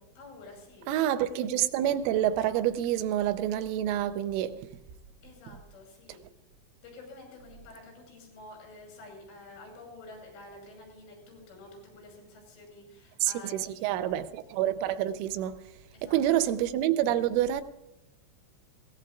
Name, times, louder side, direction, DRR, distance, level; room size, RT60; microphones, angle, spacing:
voice 1, 0.2-1.1 5.2-6.2 6.8-14.1 15.9-16.5, left 2 dB, 75° left, 8.5 m, -49 dB
voice 2, 0.9-4.6 13.2-15.7 16.0-17.6, right 11 dB, 85° right, 3.1 m, -27 dB
21.5 x 17.5 x 2.4 m
omnidirectional pair, 5.6 m